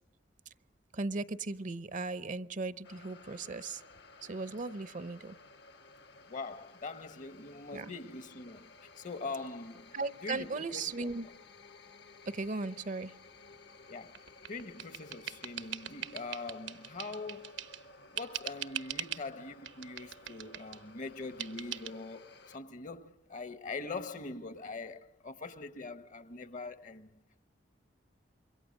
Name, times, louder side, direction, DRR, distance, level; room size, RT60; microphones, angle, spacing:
voice 1, 0.9-3.8 4.2-5.4 7.7-7.9 9.9-11.3 12.3-13.1, right 3 dB, 45° right, 0.8 m, -37 dB
sound 1, 2.8-22.6, left 3 dB, 65° left, 1.2 m, -56 dB
voice 2, 6.3-9.9 10.2-11.3 13.9-17.6 18.1-27.1, left 3 dB, 45° left, 1.0 m, -43 dB
sound 2, 14.1-17.9 18.2-19.3 19.6-20.8 21.4-21.9, right 10 dB, 75° right, 1.2 m, -41 dB
27.0 x 23.0 x 6.4 m
head